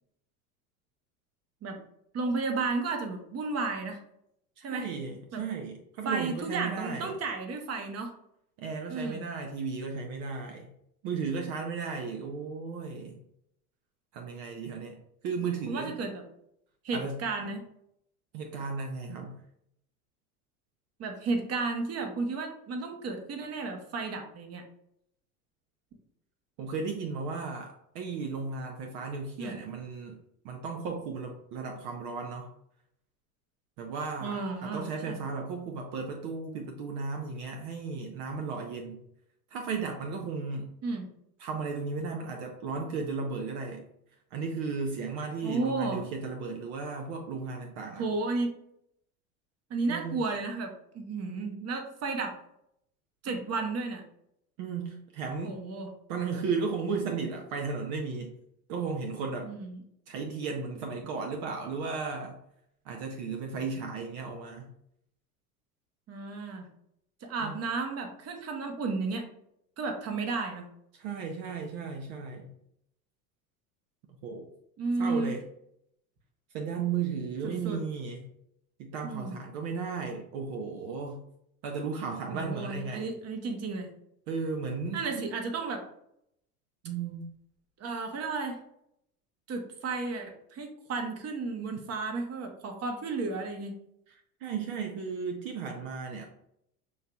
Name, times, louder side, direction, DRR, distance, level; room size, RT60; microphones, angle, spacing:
voice 1, 2.1-4.0 4.6-4.9 5.3-5.4 6.0-8.1 8.9-9.3 15.7-16.2 16.8-17.6 21.0-24.6 29.4-29.6 34.2-35.2 40.8-41.1 45.4-46.0 48.0-48.6 49.7-52.3 53.2-54.0 55.4-55.9 59.4-59.8 66.1-66.7 67.2-69.3 69.8-70.7 74.8-75.3 77.4-77.8 79.0-79.4 82.3-83.9 84.9-85.8 87.8-88.6 89.5-93.8, right 3 dB, 35° right, 4 dB, 1.0 m, -33 dB
voice 2, 4.6-7.1 8.6-10.7 11.0-13.2 14.1-16.0 16.9-17.2 18.3-19.4 26.6-30.2 30.4-32.5 33.8-39.0 39.5-40.7 41.4-43.9 44.3-48.0 49.9-50.2 54.6-55.6 56.1-58.3 58.7-59.5 60.1-62.4 62.8-64.7 67.4-67.5 70.9-72.5 74.2-74.5 75.0-75.4 76.5-78.2 78.8-81.2 81.6-83.1 84.3-85.3 86.8-87.2 94.1-96.2, right 5 dB, 60° right, 2 dB, 0.8 m, -35 dB
6.5 x 2.8 x 2.3 m, 0.75 s
hypercardioid pair, 85°, 44 cm